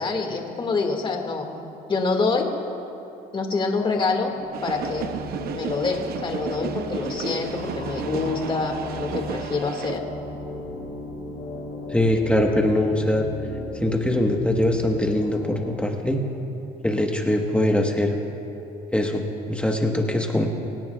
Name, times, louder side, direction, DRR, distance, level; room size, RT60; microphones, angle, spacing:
voice 1, 0.0-1.5 1.9-2.6 3.3-4.3 4.6-5.1 5.5-10.0, left 4 dB, 30° left, 2 dB, 2.0 m, -26 dB
sound 1, 4.2-15.7, left 2 dB, 60° left, 3.8 m, -36 dB
London Underground- tube trains arriving and departing, 4.5-10.0, right 9 dB, 65° right, 0.7 m, -34 dB
voice 2, 11.9-13.3 13.7-16.2 16.8-18.2 18.9-20.5, left 1 dB, 5° left, 2 dB, 1.3 m, -22 dB
25.5 x 17.5 x 2.4 m, 2.8 s
cardioid pair, 110°, 17 cm